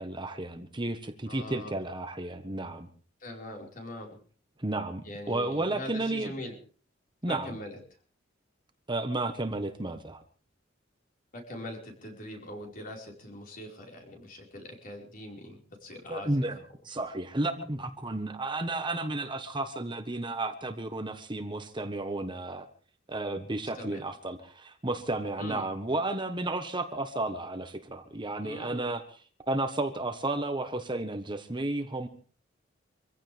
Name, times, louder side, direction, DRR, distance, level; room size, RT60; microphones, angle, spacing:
voice 1, 0.0-2.9 4.6-6.3 7.2-7.5 8.9-10.2 16.1-16.6 16.8-22.7 23.1-29.0 29.5-32.1, right 2 dB, 25° right, 7 dB, 1.3 m, -32 dB
voice 2, 1.3-1.8 3.2-4.2 5.0-6.6 7.3-7.8 11.3-16.5 23.7-24.0 25.4-25.7 28.4-28.8, left 1 dB, 45° left, 1 dB, 4.8 m, -42 dB
25.5 x 15.5 x 3.5 m, 0.41 s
head